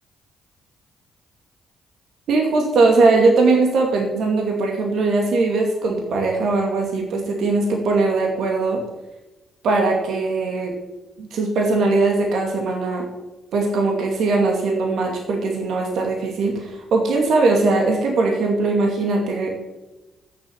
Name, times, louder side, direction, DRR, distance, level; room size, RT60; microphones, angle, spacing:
voice 1, 2.3-8.8 9.6-10.7 11.2-13.1 13.5-19.5, right 3 dB, 65° right, 2 dB, 2.3 m, -20 dB
13.5 x 7.5 x 7.3 m, 1.0 s
hypercardioid pair, 40°, 0 cm